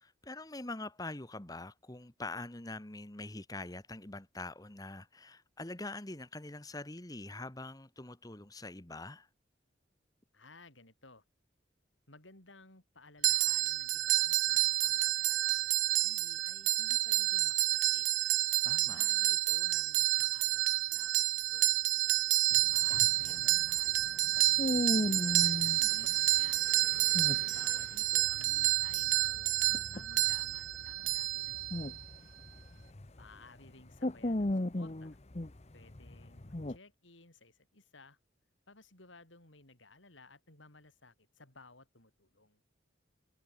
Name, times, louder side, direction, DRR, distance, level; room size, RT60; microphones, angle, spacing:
voice 1, 0.0-9.3 18.6-19.0 25.8-26.1, left 2 dB, 20° left, 1.3 m, -44 dB
voice 2, 10.3-11.2 12.1-18.1 18.8-21.8 22.7-26.7 27.4-29.6 29.9-32.0 33.2-35.2 35.7-38.2 38.7-42.6, left 3 dB, 80° left, 6.1 m, -58 dB
sound 1, 13.2-32.0, right 17 dB, 80° right, 0.6 m, -29 dB
sound 2, 14.8-30.9, left 3 dB, 60° left, 3.4 m, -61 dB
sound 3, 22.5-25.8 26.8-27.9 28.2-33.3 33.7-36.8, left 1 dB, 35° left, 0.9 m, -36 dB
head